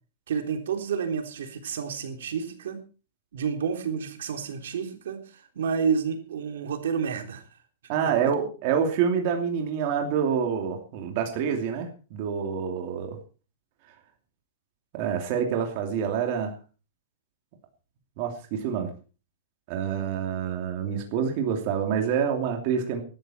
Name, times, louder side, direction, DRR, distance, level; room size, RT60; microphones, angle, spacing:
voice 1, 0.3-2.8 3.3-7.4 8.0-8.3, right 6 dB, 80° right, 6 dB, 3.6 m, -30 dB
voice 2, 7.9-13.2 14.9-16.5 18.2-18.9 19.7-23.0, right 7 dB, 35° right, 3 dB, 2.8 m, -27 dB
18.5 x 13.0 x 4.4 m, 0.36 s
supercardioid pair, 180°, 0 cm